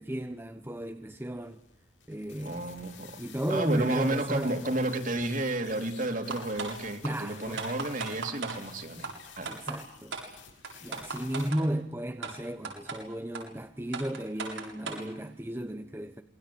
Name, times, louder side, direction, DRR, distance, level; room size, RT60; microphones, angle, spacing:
voice 1, 0.0-1.6 2.1-2.6 3.2-4.6 7.0-7.6 9.4-10.2 10.8-16.2, right 1 dB, 10° right, 7 dB, 1.1 m, -34 dB
sound 1, 1.4-11.5, left 7 dB, 80° left, 6.7 m, -52 dB
voice 2, 2.4-3.2 3.5-9.1 9.4-9.7, right 1 dB, 45° right, 6 dB, 3.3 m, -32 dB
sound 2, 6.3-6.7 7.0-7.1 7.6-8.6 9.0-9.1 9.5-9.8 10.1-10.2 10.6-11.6 12.2-12.3 12.6-13.0 13.3-13.4 13.9-15.0, right 4 dB, 90° right, 7.5 m, -36 dB
27.0 x 22.5 x 8.6 m, 0.75 s
head